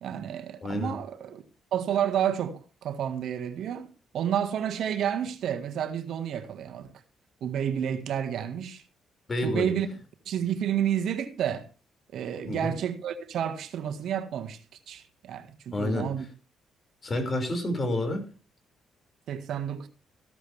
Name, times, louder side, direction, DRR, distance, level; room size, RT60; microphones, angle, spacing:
voice 1, 0.0-1.4 1.7-6.9 7.4-8.8 9.4-9.9 10.2-11.7 12.1-14.6 14.9-16.2 19.3-19.9, right 9 dB, 70° right, 1.6 m, -30 dB
voice 2, 0.6-1.0 9.3-9.7 12.5-12.7 15.7-16.1 17.0-18.2, left 1 dB, 35° left, 5.4 m, -29 dB
15.0 x 12.5 x 3.4 m
cardioid pair, 90°, 0 cm